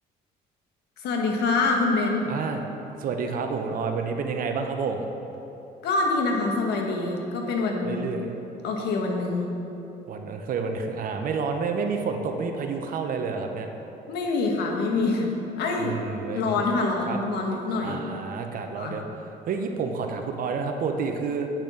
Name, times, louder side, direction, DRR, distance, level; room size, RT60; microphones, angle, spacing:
voice 1, 1.0-2.3 5.8-8.0 8.6-9.5 14.1-16.0 16.3-18.0 18.8-19.0, left 3 dB, 80° left, 1 dB, 1.4 m, -25 dB
voice 2, 2.3-2.6 3.0-5.1 7.8-8.3 10.1-13.7 15.8-16.6 17.1-17.2 17.8-19.0 19.5-21.5, right 5 dB, 55° right, 5 dB, 0.9 m, -29 dB
8.7 x 6.0 x 6.0 m, 3.0 s
cardioid pair, 110°, 17 cm